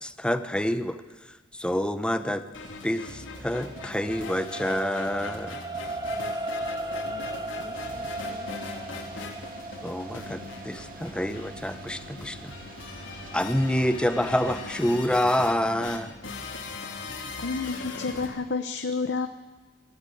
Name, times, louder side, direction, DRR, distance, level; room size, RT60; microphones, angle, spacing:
voice 1, 0.0-1.0 1.5-2.5 2.8-5.6 9.8-12.5 13.3-16.1, equal, 5° left, 10 dB, 0.9 m, -27 dB
sound 1, 2.5-18.3, left 3 dB, 90° left, 3.5 m, -40 dB
sound 2, 2.9-15.5 16.0-16.1, right 1 dB, 20° right, 1.0 m, -37 dB
voice 2, 6.8-9.1, left 1 dB, 45° left, -3 dB, 2.1 m, -47 dB
sound 3, 7.7-15.2, right 3 dB, 50° right, 2.2 m, -47 dB
voice 3, 17.4-19.3, left 4 dB, 65° left, 9 dB, 0.8 m, -30 dB
22.0 x 13.5 x 9.3 m, 1.3 s
head